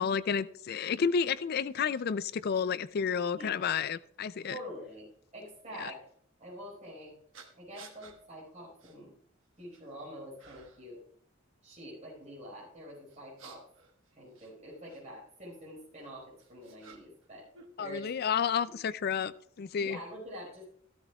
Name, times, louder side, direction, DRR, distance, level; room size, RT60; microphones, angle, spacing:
voice 1, 0.0-4.6 5.8-5.9 17.8-19.3 19.6-20.0, left 6 dB, 50° left, 15 dB, 0.4 m, -31 dB
sound 1, 1.9-2.0 2.5-2.7 3.6-3.7 5.7-5.9 7.3-8.2 8.8-9.0 9.4-9.9 10.4-10.9 13.1-15.0 16.0-17.3 17.5-18.4, right 5 dB, 70° right, 1.3 m, -56 dB
voice 2, 3.3-3.8 4.4-5.1 5.3-6.0 6.4-7.1 7.6-9.1 9.6-11.0 11.6-13.6 14.1-17.5 17.8-18.1 18.7-18.8 19.8-20.6, equal, 35° right, -4 dB, 4.7 m, -46 dB
14.0 x 12.5 x 2.3 m, 0.64 s
head